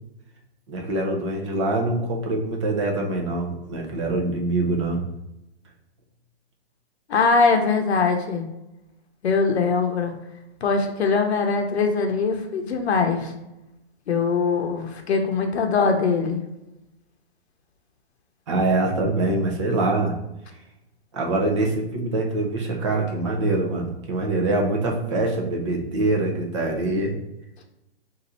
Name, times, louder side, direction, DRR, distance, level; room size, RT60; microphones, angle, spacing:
voice 1, 0.7-5.0 18.5-20.1 21.1-27.1, right 2 dB, 30° right, 0 dB, 0.6 m, -24 dB
voice 2, 7.1-8.4 9.2-10.1 10.6-13.3 14.1-16.4, left 4 dB, 80° left, 5 dB, 0.7 m, -22 dB
4.0 x 2.6 x 4.1 m, 0.91 s
hypercardioid pair, 170°, 32 cm